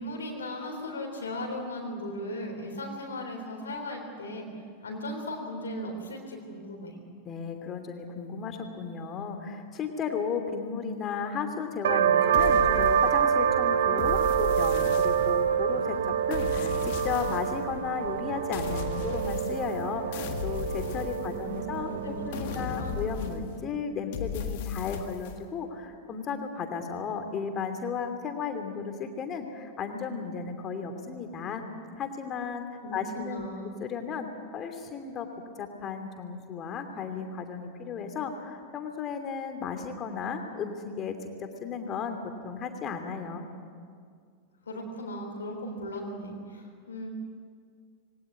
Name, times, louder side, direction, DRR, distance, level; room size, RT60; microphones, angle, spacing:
voice 1, 0.0-4.5 4.8-7.0 21.2-23.0 32.8-33.7 44.7-47.1, left 1 dB, 70° left, 2 dB, 3.7 m, -37 dB
voice 2, 7.2-31.6 32.0-32.7 32.9-33.5 33.8-34.3 34.5-35.3 35.6-42.2 42.4-43.5, left 6 dB, 30° left, 6 dB, 2.9 m, -34 dB
sound 1, 11.8-23.1, right 8 dB, 60° right, 1.2 m, -27 dB
sound 2, 12.3-13.4 14.0-15.6 16.3-17.6 18.5-19.8 20.1-21.7 22.3-23.7 24.1-25.4, left 7 dB, 50° left, 1.7 m, -36 dB
22.5 x 18.0 x 9.6 m, 2.1 s
figure-of-eight pair, 90°, 0 cm